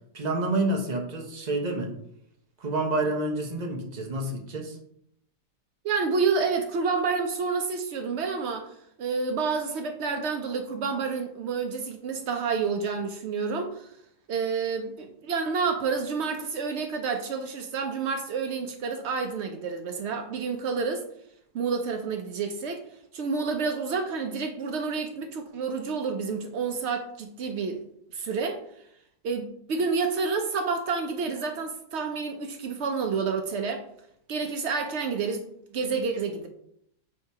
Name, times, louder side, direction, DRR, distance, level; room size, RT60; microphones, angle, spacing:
voice 1, 0.1-1.9 2.6-4.8, right 2 dB, 30° right, 1 dB, 0.9 m, -28 dB
voice 2, 5.8-13.9 14.3-21.0 21.5-22.8 23.1-27.8 28.1-28.6 29.2-33.8 34.3-35.5 35.7-36.5, right 5 dB, 85° right, 5 dB, 0.6 m, -29 dB
7.4 x 2.8 x 4.7 m, 0.72 s
omnidirectional pair, 1.8 m